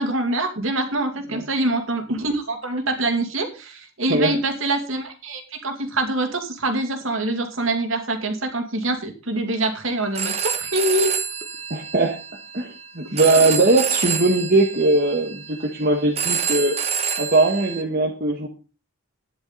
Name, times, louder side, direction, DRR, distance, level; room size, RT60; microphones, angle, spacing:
voice 1, 0.0-11.1, right 2 dB, 65° right, 5 dB, 2.5 m, -25 dB
Telephone, 10.0-17.8, right 7 dB, 30° right, 1.1 m, -28 dB
voice 2, 11.7-12.2 12.5-16.8 17.2-18.5, right 2 dB, 45° right, 0 dB, 1.5 m, -20 dB
12.5 x 10.5 x 4.1 m, 0.33 s
head